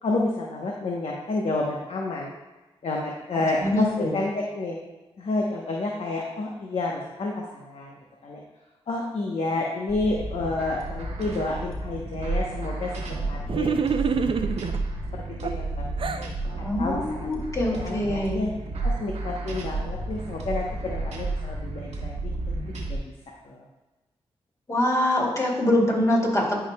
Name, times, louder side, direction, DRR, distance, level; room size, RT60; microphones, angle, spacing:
voice 1, 0.0-2.3 2.8-4.8 5.2-8.4 8.9-12.9 13.3-14.3 15.1-15.2 15.5-16.2 16.6-17.3 17.8-18.5 18.8-22.3 22.9-23.0 23.4-23.6, left 2 dB, 65° left, -2 dB, 0.9 m, -30 dB
voice 2, 3.3-4.2 16.6-18.4 24.7-26.6, left 1 dB, 30° left, -2 dB, 2.3 m, -24 dB
sound 1, 9.9-23.0, right 2 dB, 85° right, 1.2 m, -32 dB
sound 2, 13.5-14.8 15.4-16.3, right 6 dB, 55° right, 0.5 m, -26 dB
11.0 x 4.8 x 2.3 m, 1.1 s
cardioid pair, 60°, 11 cm